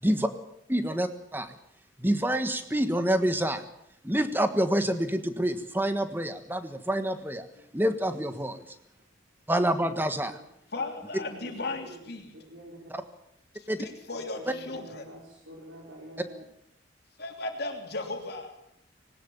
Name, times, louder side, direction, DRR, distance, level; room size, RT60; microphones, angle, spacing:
voice 1, 0.7-1.5 2.0-3.6 4.0-7.5 7.7-8.6 9.5-10.4 12.9-13.0 13.7-13.9, right 1 dB, 10° right, 9 dB, 1.4 m, -27 dB
voice 2, 9.6-10.0 10.2-10.3 11.2-12.9 14.1-16.4, equal, 80° right, -2 dB, 4.7 m, -47 dB
voice 3, 10.7-12.3 13.5-15.1 17.2-18.5, left 2 dB, 55° left, 3 dB, 3.3 m, -36 dB
20.0 x 18.5 x 7.1 m, 0.75 s
head